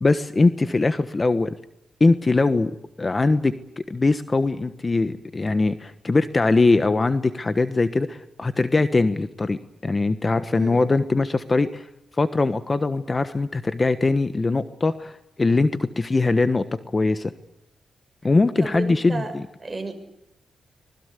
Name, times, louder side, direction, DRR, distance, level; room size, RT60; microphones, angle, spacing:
voice 1, 0.0-1.5 2.0-2.7 3.0-11.9 12.2-17.3 18.2-19.4, left 3 dB, 30° left, 12 dB, 1.2 m, -21 dB
voice 2, 10.5-10.8 18.6-19.3 19.6-19.9, right 3 dB, 25° right, 5 dB, 7.0 m, -32 dB
25.5 x 20.5 x 8.3 m, 0.84 s
cardioid pair, 75°, 0 cm